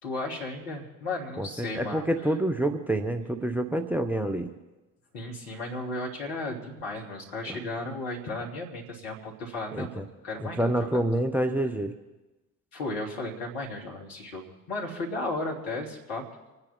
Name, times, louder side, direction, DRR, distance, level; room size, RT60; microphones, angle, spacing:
voice 1, 0.0-2.0 5.1-11.0 12.7-16.2, left 2 dB, 60° left, 0 dB, 3.3 m, -35 dB
voice 2, 1.4-4.5 7.5-7.6 9.7-10.0 10.4-11.9, right 1 dB, 5° right, 7 dB, 1.1 m, -27 dB
27.0 x 9.8 x 4.6 m, 1.1 s
figure-of-eight pair, 55°, 42 cm